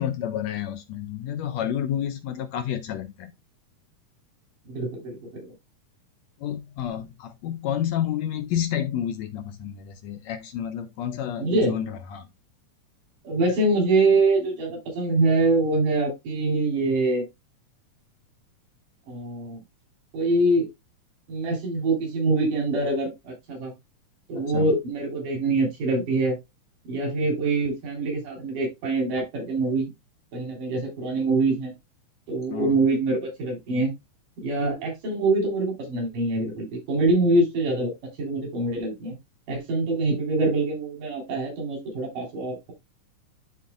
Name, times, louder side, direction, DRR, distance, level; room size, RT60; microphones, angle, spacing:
voice 1, 0.0-3.3 6.4-12.3 24.3-24.7 32.5-32.8, left 10 dB, 75° left, 1.7 m, -30 dB
voice 2, 4.7-5.5 11.4-11.8 13.2-17.2 19.1-19.6 20.1-20.7 21.3-23.7 24.3-26.4 26.9-29.9 30.3-31.7 32.3-33.9 34.4-37.9 38.2-39.2 39.5-42.7, right 2 dB, 85° right, 4.8 m, -24 dB
12.0 x 3.9 x 2.3 m
omnidirectional pair, 3.6 m